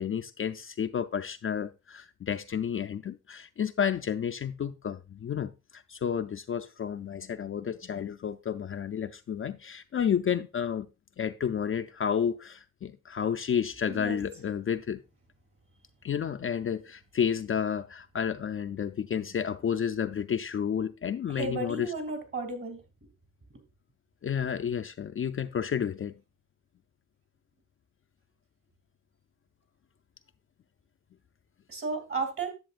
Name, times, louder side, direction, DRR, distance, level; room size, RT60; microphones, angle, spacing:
voice 1, 0.0-10.9 11.2-15.0 16.0-21.9 24.2-26.2, left 8 dB, 40° left, 0.4 m, -31 dB
voice 2, 21.4-22.8 31.7-32.5, right 3 dB, 40° right, 2.4 m, -33 dB
10.5 x 7.2 x 2.4 m
cardioid pair, 85°, 32 cm